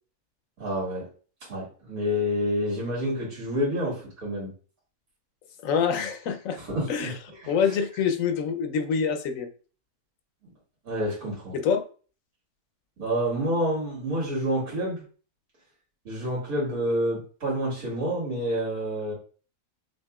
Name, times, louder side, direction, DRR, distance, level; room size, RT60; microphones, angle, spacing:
voice 1, 0.6-1.1 1.5-4.5 6.6-7.1 7.4-7.5 10.8-11.6 13.0-15.0 16.0-19.1, equal, 85° right, -5 dB, 2.5 m, -28 dB
voice 2, 5.6-6.6 6.9-7.2 7.5-9.5 11.5-11.8, left 6 dB, 70° left, 7 dB, 1.0 m, -26 dB
6.3 x 2.8 x 2.3 m, 0.39 s
omnidirectional pair, 1.5 m